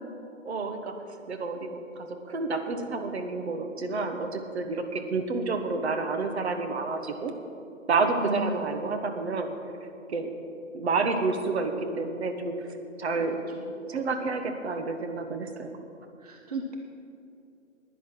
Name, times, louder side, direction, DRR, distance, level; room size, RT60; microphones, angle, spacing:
voice 1, 0.4-1.0 1.3-7.3 7.9-9.5 10.1-10.3 10.7-12.7 13.0-13.4 13.9-15.7, right 3 dB, 50° right, 6 dB, 1.3 m, -29 dB
voice 2, 8.2-8.6 13.2-13.7 16.2-16.8, right 2 dB, 30° right, 3 dB, 0.5 m, -35 dB
11.0 x 9.9 x 6.1 m, 2.7 s
hypercardioid pair, 150°, 41 cm